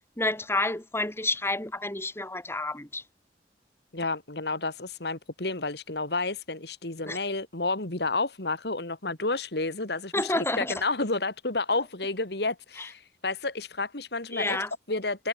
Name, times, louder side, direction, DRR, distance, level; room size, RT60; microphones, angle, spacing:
voice 1, 0.2-3.0 7.0-7.2 10.1-10.7 12.8-12.9 14.3-14.7, left 2 dB, 15° left, 2.9 m, -29 dB
voice 2, 3.9-14.6 14.9-15.3, left 3 dB, 60° left, 2.7 m, -30 dB
head